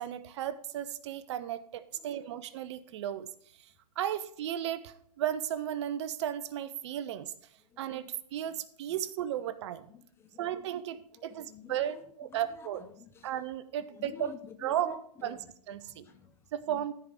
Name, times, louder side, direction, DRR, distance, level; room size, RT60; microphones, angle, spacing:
voice 1, 0.0-3.3 3.6-7.3 7.8-9.8 10.4-12.8 13.2-14.3 14.6-15.4 15.7-16.1 16.5-16.9, right 11 dB, 40° right, 13 dB, 0.6 m, -35 dB
voice 2, 9.9-10.7 11.4-12.0 12.3-13.3 13.9-15.5 15.8-16.4 16.7-16.9, left 7 dB, 10° left, 7 dB, 0.5 m, -51 dB
14.0 x 4.8 x 3.5 m, 0.63 s
hypercardioid pair, 130°, 21 cm